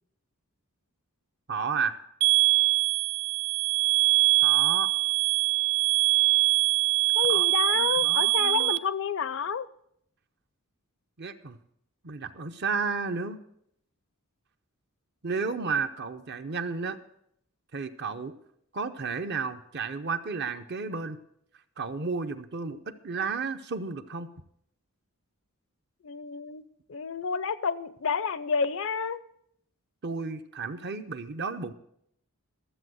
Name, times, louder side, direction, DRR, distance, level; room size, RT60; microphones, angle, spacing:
voice 1, 1.5-2.0 4.4-4.9 7.3-8.8 11.2-11.6 12.0-13.4 15.2-17.0 17.7-18.3 18.7-21.2 21.8-24.3 30.0-31.7, right 5 dB, 50° right, 9 dB, 0.7 m, -32 dB
sound 1, 2.2-8.8, right 22 dB, 90° right, 0.5 m, -23 dB
voice 2, 7.1-9.7 26.0-26.6 26.9-29.2, left 6 dB, 60° left, 16 dB, 0.5 m, -29 dB
13.0 x 7.7 x 6.3 m, 0.72 s
head